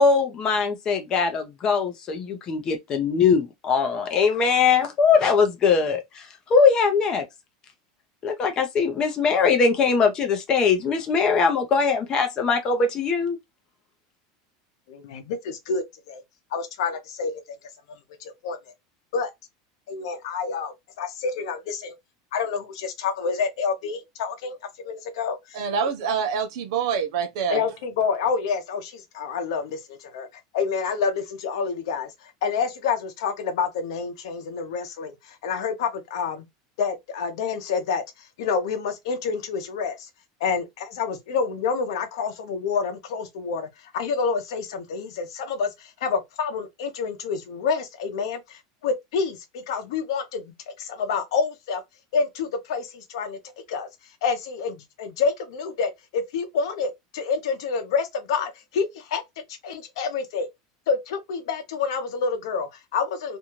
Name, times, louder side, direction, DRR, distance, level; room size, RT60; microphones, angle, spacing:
voice 1, 0.0-6.2 6.5-7.2 8.2-13.4, left 5 dB, 25° left, 0.6 m, -21 dB
voice 2, 14.9-16.2 16.5-17.4 18.2-18.6 19.1-19.3 19.9-21.9 22.3-24.6 24.8-25.9 27.5-30.3 30.5-32.1 32.4-36.5 36.8-38.0 38.4-40.1 40.4-51.8 52.1-53.4 53.7-53.9 54.2-59.2 59.6-60.5 60.9-63.4, left 5 dB, 75° left, 0.7 m, -28 dB
voice 3, 25.5-27.6, right 6 dB, 65° right, 0.6 m, -26 dB
2.5 x 2.3 x 3.0 m
supercardioid pair, 165°, 3 cm